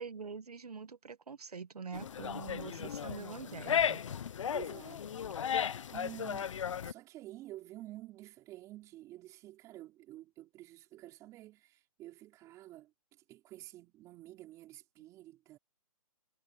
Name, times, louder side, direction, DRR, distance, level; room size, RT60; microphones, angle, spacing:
voice 1, 0.0-4.0, right 5 dB, 85° right, 1.4 m, -44 dB
sound 1, 1.9-6.9, left 8 dB, 55° left, 1.0 m, -35 dB
voice 2, 4.5-5.4 5.9-6.6 6.8-15.6, right 15 dB, 15° right, 4.5 m, -50 dB
hypercardioid pair, 155°, 19 cm